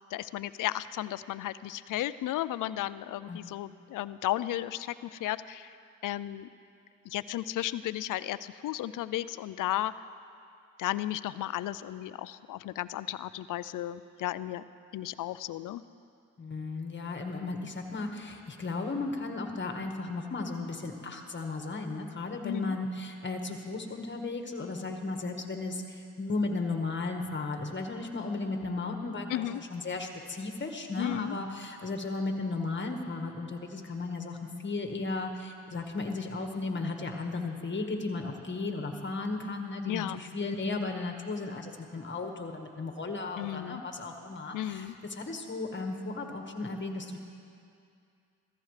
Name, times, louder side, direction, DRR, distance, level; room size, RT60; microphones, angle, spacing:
voice 1, 0.1-5.8 6.0-6.5 7.1-9.9 10.8-14.6 14.9-15.8 22.4-22.8 29.3-29.6 31.0-31.4 39.9-40.2 43.4-43.8 44.5-45.0, left 13 dB, 70° left, 16 dB, 0.5 m, -34 dB
voice 2, 16.4-47.2, left 3 dB, 35° left, 3 dB, 1.5 m, -35 dB
15.0 x 14.5 x 3.3 m, 2.4 s
supercardioid pair, 60°, 32 cm